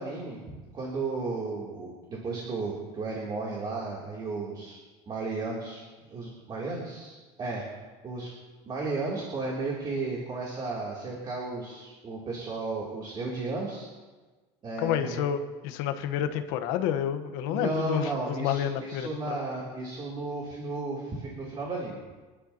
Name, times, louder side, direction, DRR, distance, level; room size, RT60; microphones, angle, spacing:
voice 1, 0.0-4.8 5.1-5.8 6.1-7.7 8.0-8.3 8.7-13.9 14.6-15.2 17.5-22.0, right 3 dB, 30° right, -3 dB, 3.1 m, -34 dB
voice 2, 14.8-18.1 18.4-19.4, left 10 dB, 85° left, 7 dB, 1.2 m, -29 dB
27.5 x 11.5 x 2.9 m, 1.3 s
cardioid pair, 145°, 15 cm